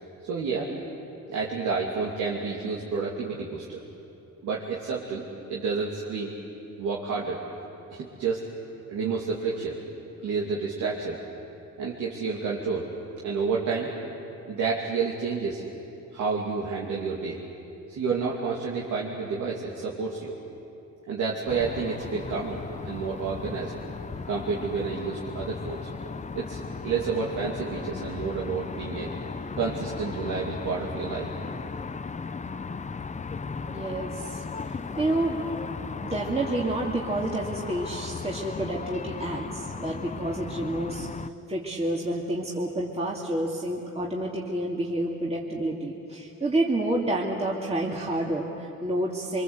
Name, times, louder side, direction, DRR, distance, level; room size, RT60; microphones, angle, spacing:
voice 1, 0.2-0.7 1.3-3.8 4.4-5.2 5.5-6.3 6.8-7.4 7.9-8.4 8.9-9.8 10.2-11.2 11.8-12.9 13.2-13.9 14.5-15.6 16.1-17.4 17.9-20.4 21.1-23.7 24.3-25.9 26.4-29.1 29.5-31.3, right 5 dB, 75° right, -3 dB, 2.8 m, -30 dB
sound 1, 21.5-41.3, left 4 dB, 25° left, 0.8 m, -36 dB
voice 2, 33.7-35.5 36.0-41.1 41.5-49.4, right 1 dB, 20° right, -3 dB, 2.5 m, -29 dB
25.0 x 24.0 x 8.1 m, 2.9 s
cardioid pair, 90°, 30 cm